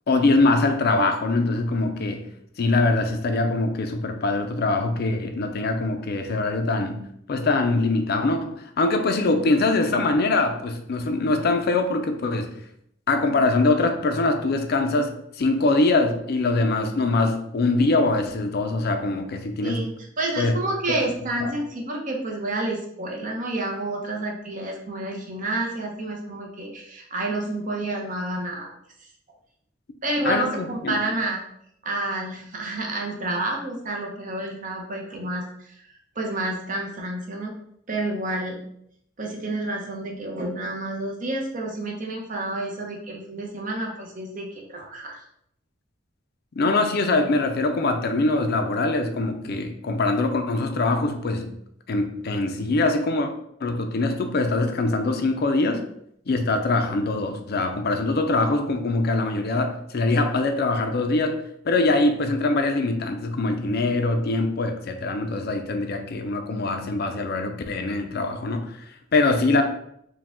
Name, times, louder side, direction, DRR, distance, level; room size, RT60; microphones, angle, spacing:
voice 1, 0.1-2.3 2.6-7.0 7.3-12.5 13.1-19.9 20.4-20.5 21.4-21.5 30.2-31.0 46.5-51.5 51.9-53.3 53.6-55.8 56.3-61.4 61.6-69.6, left 2 dB, 55° left, 6 dB, 0.5 m, -23 dB
voice 2, 19.6-28.7 30.0-31.4 31.8-35.7 36.2-38.6 39.2-45.2, right 2 dB, 45° right, 0 dB, 0.8 m, -29 dB
4.7 x 2.3 x 3.6 m, 0.72 s
head